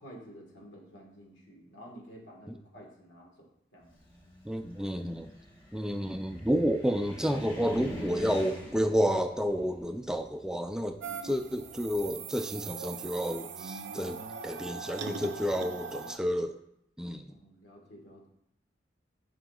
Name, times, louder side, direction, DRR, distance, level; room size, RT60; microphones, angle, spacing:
voice 1, 0.0-3.5 3.7-3.9 17.3-18.3, equal, 85° left, -1 dB, 1.7 m, -51 dB
Car, 3.9-12.1, equal, 25° left, 1.2 m, -44 dB
voice 2, 4.5-5.3 5.7-16.6 17.0-17.2, equal, 5° right, 7 dB, 0.3 m, -30 dB
sound 1, 11.0-16.2, right 5 dB, 80° right, 0.5 m, -40 dB
11.0 x 5.0 x 2.4 m, 0.79 s
head